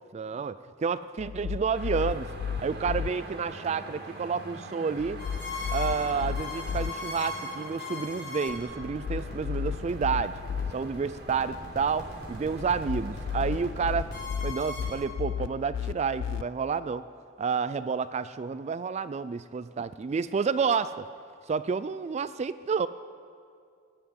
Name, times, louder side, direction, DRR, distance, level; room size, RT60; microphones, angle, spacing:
voice 1, 0.1-2.3 2.6-5.2 5.7-10.4 10.7-14.1 14.4-17.0 17.4-21.0 21.5-22.9, right 5 dB, 35° right, 14 dB, 0.3 m, -30 dB
sound 1, 1.2-3.1 5.0-6.9 8.8-10.7 12.6-16.4, left 7 dB, 85° left, 0.3 m, -34 dB
sound 2, 1.7-13.7, right 2 dB, 60° right, 1.9 m, -44 dB
sound 3, 5.2-15.0, left 2 dB, 60° left, 4.7 m, -39 dB
17.0 x 7.5 x 9.5 m, 2.3 s
head